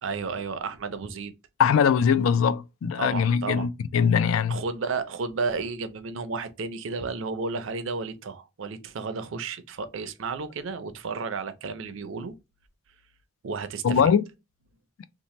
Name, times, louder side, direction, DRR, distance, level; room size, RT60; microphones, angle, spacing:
voice 1, 0.0-1.3 3.0-3.7 4.5-12.3 13.4-14.1, right 4 dB, 75° right, 0.5 m, -32 dB
voice 2, 1.6-4.6 13.8-14.2, left 7 dB, 90° left, 0.3 m, -21 dB
2.8 x 2.1 x 3.0 m
head